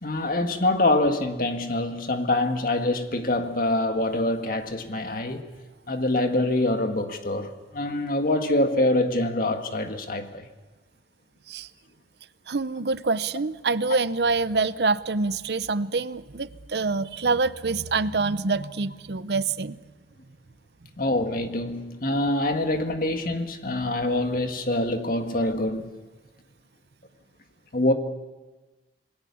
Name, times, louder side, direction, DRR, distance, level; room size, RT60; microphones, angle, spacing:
voice 1, 0.0-5.4 5.9-10.4 21.0-25.9 27.7-27.9, left 1 dB, 55° left, 1.9 m, -25 dB
voice 2, 12.5-19.8, right 3 dB, 65° right, 0.7 m, -26 dB
27.5 x 20.5 x 7.1 m
head